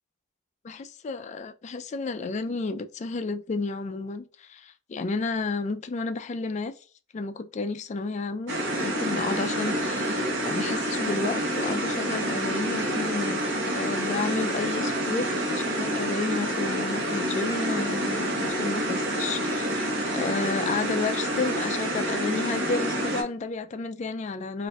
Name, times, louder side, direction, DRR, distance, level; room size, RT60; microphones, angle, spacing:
voice 1, 0.6-6.7 7.1-8.6 8.8-13.4 13.7-24.7, left 3 dB, 35° left, 0.3 m, -31 dB
sound 1, 8.5-23.2, equal, 65° right, 0.9 m, -28 dB
4.0 x 2.5 x 2.3 m
head